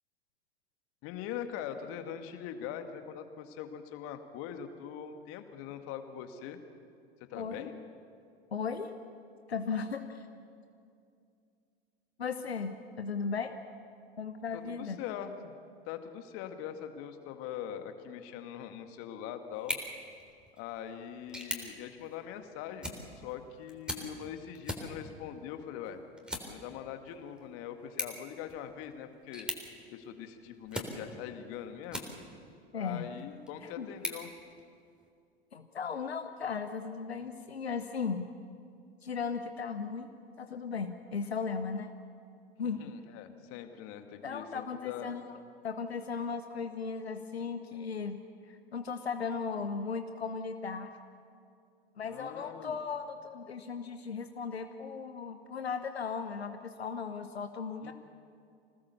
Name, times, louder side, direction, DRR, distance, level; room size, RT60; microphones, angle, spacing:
voice 1, 1.0-6.6 7.3-7.7 14.5-15.5 15.9-19.8 20.6-26.0 26.5-29.5 29.9-32.1 32.7-34.3 42.6-45.1 52.0-52.8 57.8-57.9, left 9 dB, 45° left, 7 dB, 2.0 m, -42 dB
voice 2, 7.4-7.7 8.5-8.9 9.5-10.3 12.2-13.6 14.2-15.0 32.7-33.1 33.6-33.9 35.5-38.3 39.0-40.1 40.4-41.9 42.6-42.9 44.2-45.4 45.6-48.2 48.5-50.9 52.0-57.9, left 5 dB, 80° left, 8 dB, 1.0 m, -36 dB
sound 1, 19.5-32.5 33.0-35.1, equal, 5° right, 3.7 m, -43 dB
26.5 x 19.0 x 7.0 m, 2.4 s
figure-of-eight pair, 85°, 31 cm